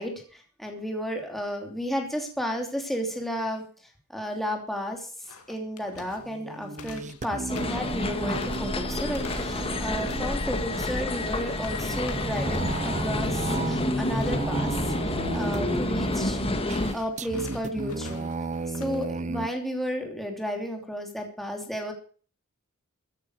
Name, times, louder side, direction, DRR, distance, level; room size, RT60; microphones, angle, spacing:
voice 1, 0.0-3.6 4.1-5.1 5.5-14.7 15.0-16.4 16.9-18.3 18.7-21.9, equal, ahead, 2 dB, 3.0 m, -33 dB
sound 1, 5.2-13.1 13.4-13.7 14.0-14.4 16.4-19.1, left 4 dB, 85° left, 2.2 m, -45 dB
sound 2, 6.2-19.5, right 3 dB, 35° right, 0.6 m, -35 dB
sound 3, 7.5-16.9, left 1 dB, 25° left, 1.8 m, -29 dB
15.0 x 10.0 x 6.5 m, 0.43 s
head